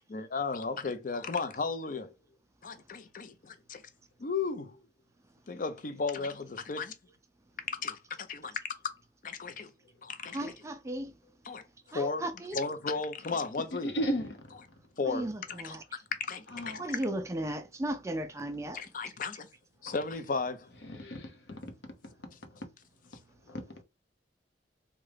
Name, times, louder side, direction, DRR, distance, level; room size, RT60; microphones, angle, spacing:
voice 1, 0.1-2.1 2.6-3.8 4.2-4.8 5.5-6.9 7.8-8.9 9.2-9.7 10.0-10.5 11.4-11.6 11.9-12.2 12.5-13.9 15.0-15.8 16.3-17.0 18.7-19.5 19.8-20.7 21.5-21.6, left 4 dB, 50° left, 0.5 m, -35 dB
voice 2, 10.3-11.1 11.9-12.6 15.0-15.8 16.8-18.8, right 1 dB, 15° right, 0.3 m, -35 dB
voice 3, 13.7-14.7 16.5-17.0 20.8-22.7 23.0-23.1 23.4-23.8, equal, 75° left, 0.8 m, -37 dB
3.6 x 2.2 x 3.3 m
head